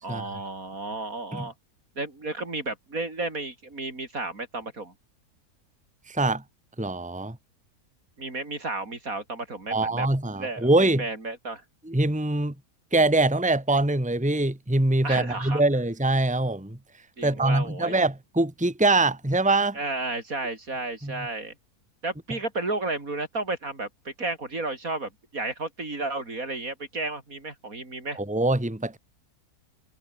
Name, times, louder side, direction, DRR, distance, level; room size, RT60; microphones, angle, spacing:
voice 1, 0.0-1.5 2.0-4.9 8.2-11.6 15.0-15.6 17.2-18.0 19.7-21.5 22.0-28.2, right 2 dB, 65° right, 5.0 m, -33 dB
voice 2, 6.1-6.4 6.8-7.4 9.7-11.0 11.9-12.5 12.9-16.8 17.2-19.8 21.0-21.3 28.2-29.0, right 2 dB, 5° right, 1.9 m, -23 dB
omnidirectional pair, 1.6 m